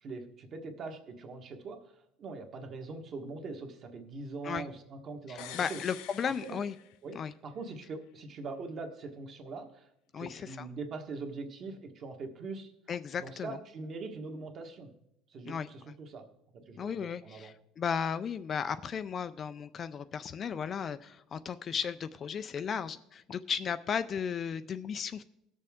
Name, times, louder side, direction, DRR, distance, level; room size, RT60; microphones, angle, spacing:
voice 1, 0.0-5.8 6.2-6.6 7.0-7.2 7.4-9.9 10.2-12.7 13.2-14.9 15.3-16.3 16.5-17.5, right 3 dB, 35° right, 4 dB, 1.3 m, -42 dB
voice 2, 5.3-6.7 7.1-7.3 10.1-10.7 12.9-13.6 15.5-15.7 16.8-25.2, left 7 dB, 30° left, 12 dB, 0.3 m, -35 dB
sound 1, 5.4-7.3 7.6-7.7, left 13 dB, 80° left, 0.6 m, -47 dB
18.5 x 6.8 x 3.6 m, 0.81 s
cardioid pair, 150°, 0 cm